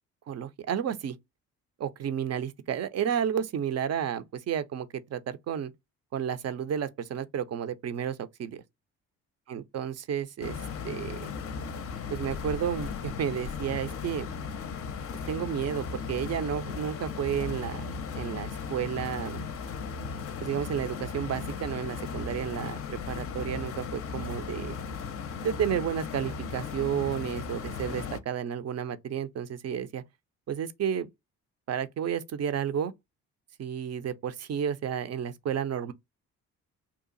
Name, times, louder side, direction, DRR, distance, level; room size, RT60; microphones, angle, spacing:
voice 1, 0.3-1.2 1.8-5.7 6.1-8.6 9.5-10.6 10.8-11.3 12.1-14.3 15.3-17.9 18.1-19.4 20.4-24.8 25.4-30.0 30.5-31.1 31.7-32.9 33.6-35.9, right 8 dB, 45° right, 0.6 m, -32 dB
sound 1, 10.4-28.2, left 5 dB, 35° left, 0.6 m, -36 dB
2.8 x 2.4 x 3.8 m
hypercardioid pair, 50°, 38 cm